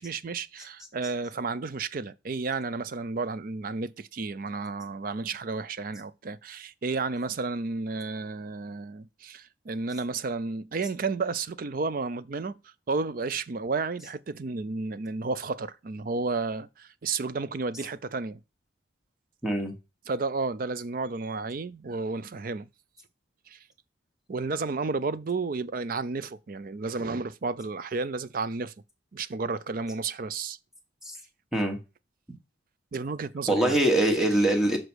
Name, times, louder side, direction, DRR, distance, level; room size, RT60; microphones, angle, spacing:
voice 1, 0.0-18.4 20.1-22.7 23.5-23.6 24.3-28.7 29.1-30.6 32.9-34.0, right 4 dB, 45° right, 0.4 m, -32 dB
voice 2, 19.4-19.7 31.0-31.2 31.5-31.8 33.5-34.8, right 1 dB, ahead, 1.3 m, -23 dB
6.0 x 4.9 x 6.2 m
head